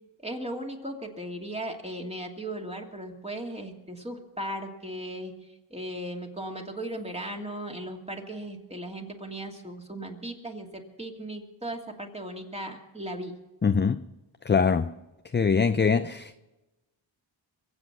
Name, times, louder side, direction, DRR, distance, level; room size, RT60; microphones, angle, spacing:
voice 1, 0.2-13.3, right 1 dB, 15° right, 2.6 m, -37 dB
voice 2, 13.6-14.0 14.4-14.9 15.3-16.4, left 5 dB, 25° left, 0.5 m, -23 dB
23.5 x 8.0 x 6.0 m
cardioid pair, 55°, 48 cm